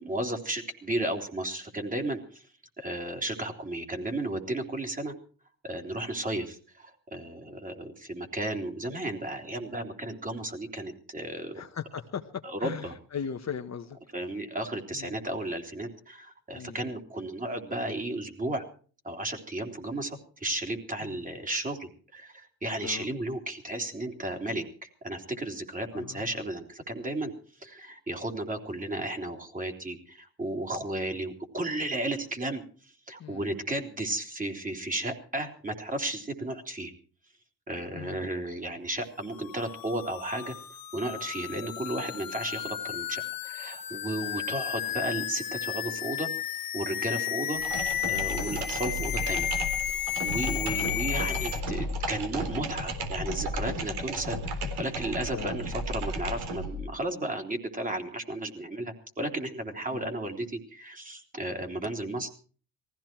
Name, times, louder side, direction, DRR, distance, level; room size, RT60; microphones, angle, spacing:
voice 1, 0.0-2.5 2.8-5.1 5.6-11.6 12.4-12.9 14.1-18.6 19.0-27.3 27.6-32.6 33.1-36.9 37.7-40.5 40.9-46.3 46.7-47.6 48.1-49.5 49.9-54.4 54.8-62.3, right 1 dB, 20° right, 5 dB, 3.4 m, -34 dB
voice 2, 11.5-12.3 12.6-14.0 14.9-15.2 16.5-16.8 21.0-21.2 22.8-23.1 25.9-26.4 33.2-33.5 37.9-38.3 47.1-47.4 55.3-55.5 59.9-60.0, left 7 dB, 40° left, 6 dB, 1.4 m, -39 dB
sound 1, 39.3-51.6, left 12 dB, 55° left, 1.2 m, -33 dB
sound 2, 47.5-56.9, equal, 70° right, 3.6 m, -33 dB
19.5 x 15.5 x 4.5 m, 0.41 s
cardioid pair, 100°, 40 cm